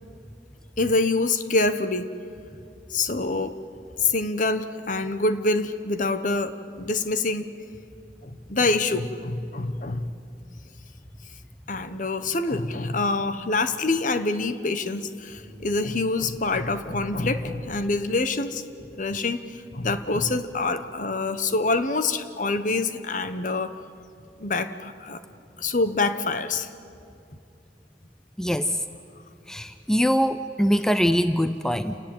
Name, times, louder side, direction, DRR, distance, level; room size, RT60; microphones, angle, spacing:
voice 1, 0.8-2.1 2.9-3.5 4.0-7.5 8.2-10.1 11.7-18.6 18.9-23.7 24.4-25.2 25.6-26.7, left 3 dB, 45° left, 10 dB, 1.1 m, -26 dB
voice 2, 28.4-28.8 29.5-32.0, equal, 5° left, 11 dB, 0.5 m, -23 dB
29.0 x 18.5 x 8.8 m, 2.6 s
head